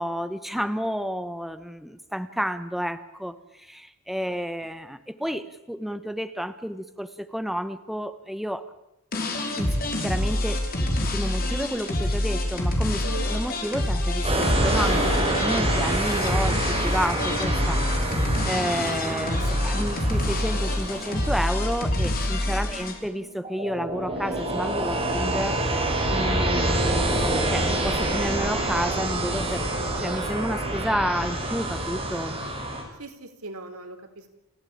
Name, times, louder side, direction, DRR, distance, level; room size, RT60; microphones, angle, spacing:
voice 1, 0.0-8.6 9.6-25.6 26.1-29.6 30.0-32.4, equal, ahead, 11 dB, 1.1 m, -31 dB
sound 1, 9.1-22.9, left 1 dB, 45° left, 5.2 m, -26 dB
sound 2, 14.2-32.8, right 1 dB, 25° right, 6.0 m, -27 dB
voice 2, 33.0-34.3, right 2 dB, 90° right, 7 dB, 3.6 m, -40 dB
29.5 x 15.5 x 8.7 m, 0.91 s
head